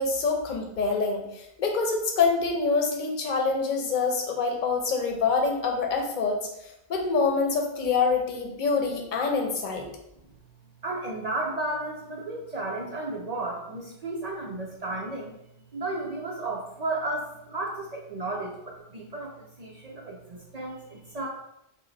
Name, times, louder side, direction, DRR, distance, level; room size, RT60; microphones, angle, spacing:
voice 1, 0.0-6.4 6.9-9.9, left 4 dB, 50° left, 2 dB, 0.9 m, -26 dB
voice 2, 10.8-15.4 15.7-21.3, right 2 dB, 45° right, -1 dB, 0.6 m, -33 dB
5.4 x 2.1 x 3.9 m, 0.82 s
omnidirectional pair, 1.1 m